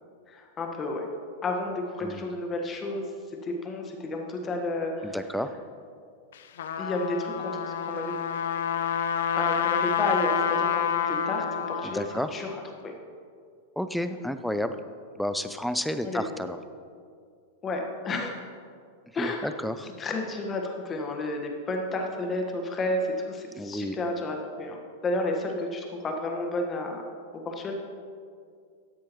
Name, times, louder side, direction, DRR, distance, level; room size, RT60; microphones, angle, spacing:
voice 1, 0.3-1.1 1.4-3.0 3.4-5.2 6.8-8.1 9.3-12.0 12.3-12.9 16.0-16.2 17.6-18.4 19.1-19.5 20.0-27.0 27.3-27.7, left 2 dB, 25° left, 2 dB, 1.4 m, -31 dB
voice 2, 2.0-2.3 5.0-5.5 11.8-12.3 13.8-14.8 15.2-16.6 19.2-19.9 23.6-24.0, left 1 dB, ahead, 10 dB, 0.4 m, -31 dB
Trumpet, 6.3-12.3, left 8 dB, 80° left, 0.6 m, -28 dB
13.0 x 8.4 x 3.1 m, 2.2 s
hypercardioid pair, 120°, 0 cm